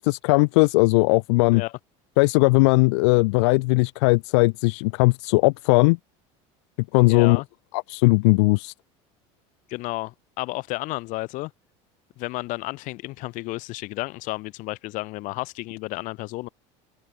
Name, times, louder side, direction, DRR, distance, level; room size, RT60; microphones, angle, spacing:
voice 1, 0.0-1.6 2.2-6.0 6.9-7.4 7.9-8.7, left 27 dB, 85° left, 0.6 m, -18 dB
voice 2, 7.1-7.5 9.7-11.5 12.2-16.5, left 21 dB, 65° left, 2.0 m, -32 dB
supercardioid pair, 120°, 14 cm